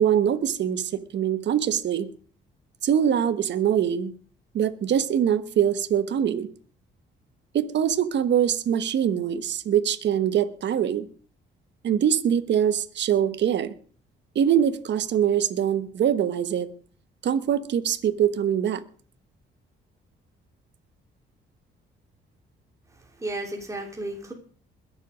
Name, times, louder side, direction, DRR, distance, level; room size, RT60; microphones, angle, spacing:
voice 1, 0.0-2.1 2.8-4.1 4.5-6.5 7.5-11.1 11.8-13.7 14.3-16.7 17.2-18.8, right 9 dB, 65° right, 12 dB, 1.2 m, -23 dB
voice 2, 22.9-24.3, right 1 dB, 15° right, 1 dB, 3.1 m, -34 dB
21.0 x 7.6 x 5.0 m, 0.42 s
cardioid pair, 90°, 20 cm